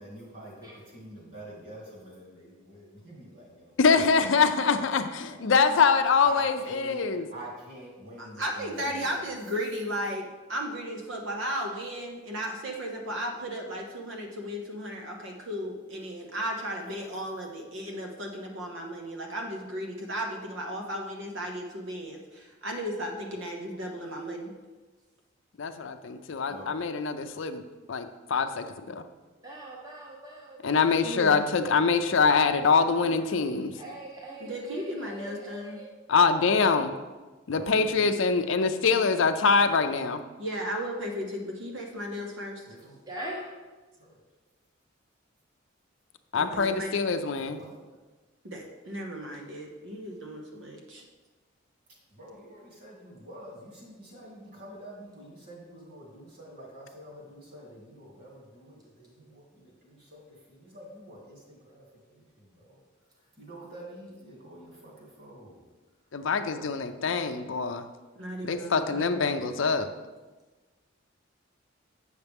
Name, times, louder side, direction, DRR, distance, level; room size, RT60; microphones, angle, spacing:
voice 1, 0.0-4.3 4.6-4.9 5.2-5.6 6.2-7.0 7.3-9.3 26.5-26.7 37.5-38.1 42.7-42.9 44.0-44.1 47.4-47.8 52.1-60.2 60.5-61.8 62.1-62.8 63.4-65.6, right 1 dB, 50° right, -4 dB, 2.5 m, -47 dB
voice 2, 3.8-7.3 25.6-27.6 27.9-29.0 30.6-33.7 36.1-36.9 37.5-40.2 46.3-47.6 66.1-67.9 68.4-69.9, left 5 dB, 70° left, 8 dB, 0.5 m, -24 dB
voice 3, 8.2-24.5 31.0-31.4 34.4-35.8 40.4-42.6 46.3-47.2 48.4-51.0 68.2-69.1, equal, 70° right, 1 dB, 0.8 m, -35 dB
voice 4, 29.4-31.4 32.7-35.9 43.1-43.5, right 1 dB, 20° right, -2 dB, 0.8 m, -42 dB
8.1 x 6.5 x 3.5 m, 1.3 s
head